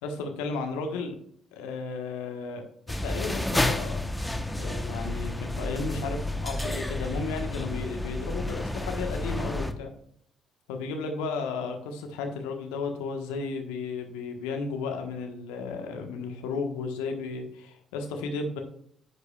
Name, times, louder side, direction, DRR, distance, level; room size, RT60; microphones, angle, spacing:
voice 1, 0.0-1.1 1.5-4.0 4.6-9.9 10.7-18.6, left 4 dB, 75° left, 4 dB, 1.3 m, -34 dB
sound 1, 2.9-9.7, left 1 dB, 10° left, 1.0 m, -30 dB
10.0 x 8.2 x 2.4 m, 0.65 s
hypercardioid pair, 45°, 0 cm